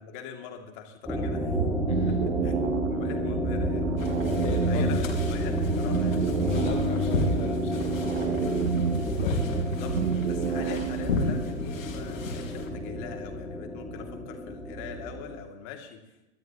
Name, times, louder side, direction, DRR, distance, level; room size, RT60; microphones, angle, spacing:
voice 1, 0.0-1.5 2.1-3.9 4.7-6.2 9.6-10.0 10.3-16.0, left 8 dB, 35° left, 3 dB, 2.7 m, -42 dB
sound 1, 1.1-15.4, left 1 dB, ahead, 1.8 m, -30 dB
sound 2, 1.4-11.4, right 8 dB, 60° right, 1.1 m, -30 dB
sound 3, 4.0-12.7, left 3 dB, 70° left, 4.1 m, -34 dB
voice 2, 4.4-5.1 6.5-8.4 9.1-9.6, left 6 dB, 15° left, 2 dB, 0.9 m, -38 dB
21.5 x 13.0 x 3.1 m, 0.97 s
hypercardioid pair, 140°, 40 cm